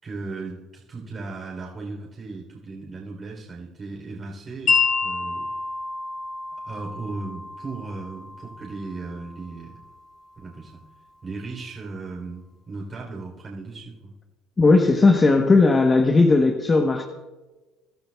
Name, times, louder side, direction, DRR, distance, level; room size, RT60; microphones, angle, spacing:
voice 1, 0.0-5.5 6.6-9.8 10.4-10.8 11.2-14.1, right 3 dB, 35° right, -3 dB, 3.6 m, -36 dB
Wind chime, 4.7-10.8, left 5 dB, 50° left, 3.9 m, -29 dB
voice 2, 14.6-17.0, left 3 dB, 25° left, 4 dB, 1.1 m, -17 dB
24.0 x 12.0 x 2.4 m, 1.2 s
supercardioid pair, 85°, 0 cm